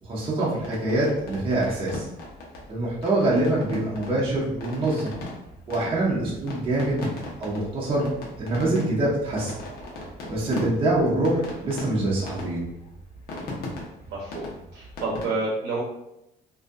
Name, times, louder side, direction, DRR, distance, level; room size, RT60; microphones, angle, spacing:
voice 1, 0.0-2.1 2.7-5.1 5.7-7.1 7.4-8.1 8.4-9.5 10.3-12.6, right 2 dB, 30° right, -6 dB, 0.8 m, -25 dB
sound 1, 0.6-15.2, left 2 dB, 65° left, 0.9 m, -39 dB
voice 2, 14.1-15.8, right 3 dB, 85° right, -3 dB, 0.7 m, -30 dB
2.6 x 2.4 x 2.3 m, 0.85 s
cardioid pair, 110°, 17 cm